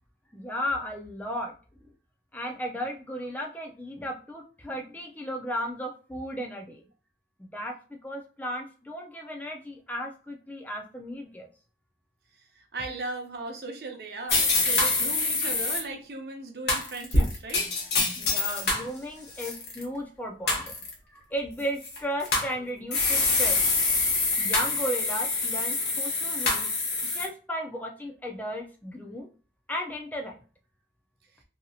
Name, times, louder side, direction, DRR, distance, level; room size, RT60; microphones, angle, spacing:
voice 1, 0.3-1.5 2.3-6.9 7.4-11.5 18.2-20.7 21.1-23.6 24.4-26.7 27.1-29.3 29.7-30.4, equal, 10° left, 1 dB, 0.4 m, -35 dB
voice 2, 12.6-17.7, right 2 dB, 60° right, 3 dB, 0.6 m, -37 dB
sound 1, 14.3-15.8 16.7-18.9 19.3-19.8 20.5-20.9 21.8-22.5 22.9-27.3, left 3 dB, 65° left, 1.0 m, -25 dB
2.8 x 2.7 x 2.3 m, 0.36 s
head